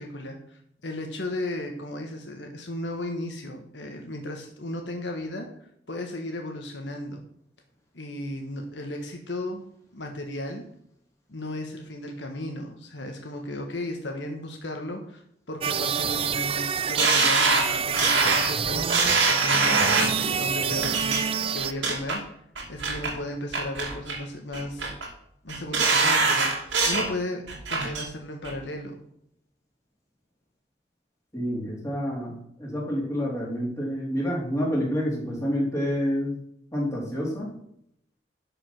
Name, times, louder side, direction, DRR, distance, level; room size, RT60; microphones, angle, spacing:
voice 1, 0.0-5.5 5.9-7.2 7.9-9.6 9.9-10.6 11.3-15.2 15.5-22.4 22.7-24.9 25.4-29.0, left 1 dB, 75° left, 3 dB, 1.4 m, -35 dB
sound 1, 15.6-21.7, right 7 dB, 30° right, 0.4 m, -27 dB
sound 2, 17.0-20.2 20.8-21.2 21.6-22.2 22.6-23.1 23.5-24.2 24.5-25.1 25.5-27.1 27.5-28.0 28.4-28.5, right 3 dB, 85° right, 2.6 m, -23 dB
voice 2, 31.3-36.4 36.7-37.5, equal, 15° left, -3 dB, 3.4 m, -28 dB
11.5 x 5.2 x 6.0 m, 0.72 s
head